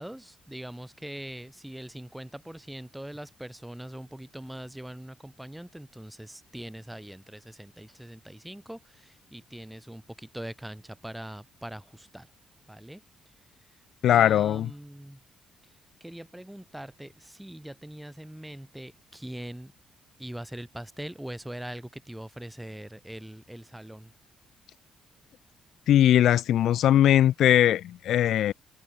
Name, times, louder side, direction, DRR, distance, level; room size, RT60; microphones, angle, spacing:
voice 1, 0.0-12.3 12.7-13.0 13.6-13.7 14.1-15.2 15.6-19.7 20.2-24.1, right 1 dB, 5° right, 6.1 m, -42 dB
voice 2, 14.0-14.7 25.9-28.5, left 11 dB, 75° left, 0.6 m, -20 dB
cardioid pair, 90°, 0 cm